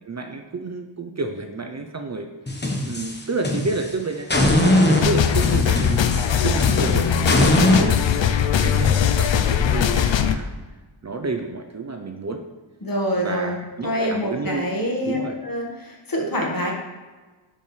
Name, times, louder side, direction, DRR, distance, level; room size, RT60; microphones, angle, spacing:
voice 1, 0.0-2.3 2.8-4.7 5.0-8.2 8.6-10.5 11.0-12.4 13.1-14.7 15.0-15.4, right 3 dB, 35° right, 4 dB, 0.6 m, -30 dB
sound 1, 2.5-3.9 4.3-7.8, left 1 dB, 20° left, 1.1 m, -21 dB
sound 2, 5.0-10.3, left 8 dB, 70° left, 0.6 m, -20 dB
voice 2, 12.8-13.6 13.8-15.2 15.4-16.7, equal, 45° left, -1 dB, 1.7 m, -26 dB
10.5 x 5.6 x 3.3 m, 1.3 s
wide cardioid pair, 120°, 46 cm